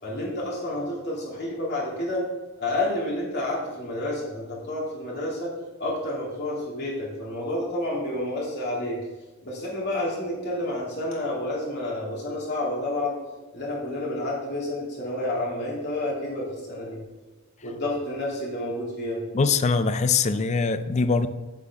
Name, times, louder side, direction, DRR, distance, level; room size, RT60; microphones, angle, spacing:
voice 1, 0.0-2.2 2.6-9.0 9.4-13.2 13.5-17.0 17.6-19.2, left 1 dB, 50° left, -4 dB, 2.7 m, -30 dB
voice 2, 19.3-21.3, left 4 dB, 30° left, 12 dB, 0.4 m, -22 dB
8.6 x 7.5 x 3.6 m, 1.2 s
head